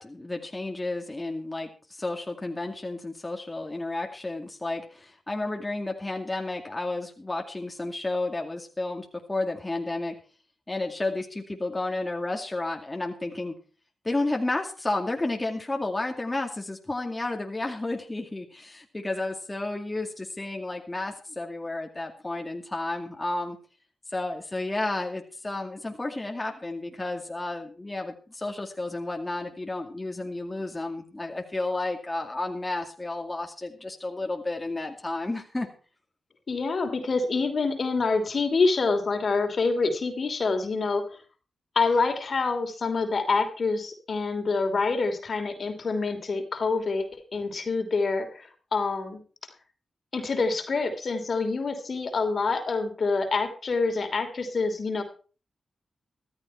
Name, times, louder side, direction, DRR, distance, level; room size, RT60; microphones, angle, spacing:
voice 1, 0.0-10.1 10.7-13.5 14.0-23.6 24.1-35.7, left 2 dB, 25° left, 2 dB, 2.2 m, -32 dB
voice 2, 36.5-41.0 41.7-49.2 50.1-55.0, left 4 dB, 60° left, 6 dB, 3.0 m, -26 dB
14.5 x 13.0 x 4.4 m, 0.38 s
supercardioid pair, 45°, 0 cm